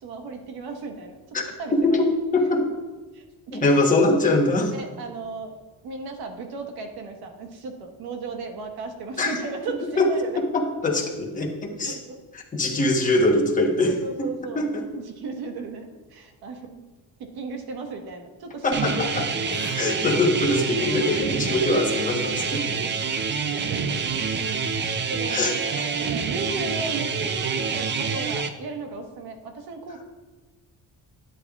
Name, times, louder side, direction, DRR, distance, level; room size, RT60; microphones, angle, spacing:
voice 1, 0.0-1.2 1.4-2.0 2.4-2.7 3.1-3.7 4.7-5.5 5.8-10.4 11.9-12.2 13.8-16.8 17.3-19.1 22.5-23.1 23.4-24.2 25.1-30.0, right 4 dB, 75° right, 3 dB, 1.4 m, -36 dB
voice 2, 1.7-2.7 3.5-4.7 9.2-9.4 10.0-10.1 10.5-12.0 12.3-14.3 14.5-14.9 18.6-19.3 19.7-22.6 25.3-25.8, left 2 dB, 20° left, 1 dB, 1.1 m, -23 dB
sound 1, 18.7-28.5, right 5 dB, 30° right, 0.4 m, -27 dB
Crying sobbing / Breathing, 18.8-23.4 23.8-24.8 25.2-25.9, left 4 dB, 45° left, 1.5 m, -40 dB
12.0 x 10.0 x 2.4 m, 1.3 s
cardioid pair, 175°, 38 cm